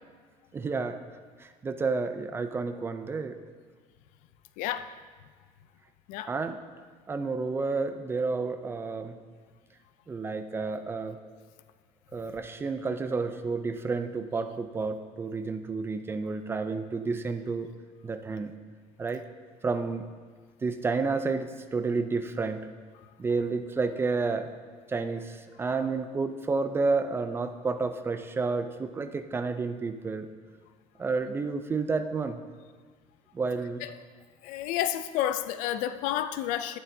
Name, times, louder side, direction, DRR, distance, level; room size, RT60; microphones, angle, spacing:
voice 1, 0.5-1.0 1.4-3.4 6.3-6.6 7.1-9.2 10.1-11.2 12.1-17.7 18.0-18.5 19.0-19.3 19.6-20.1 20.6-22.7 23.2-24.5 24.9-30.3 31.0-32.4 33.3-33.8, right 4 dB, 15° right, 8 dB, 0.4 m, -30 dB
voice 2, 4.6-4.9 6.1-6.3 33.8-34.0 34.4-36.8, left 11 dB, 80° left, 12 dB, 0.5 m, -30 dB
11.5 x 11.0 x 2.7 m, 1.5 s
cardioid pair, 150°, 13 cm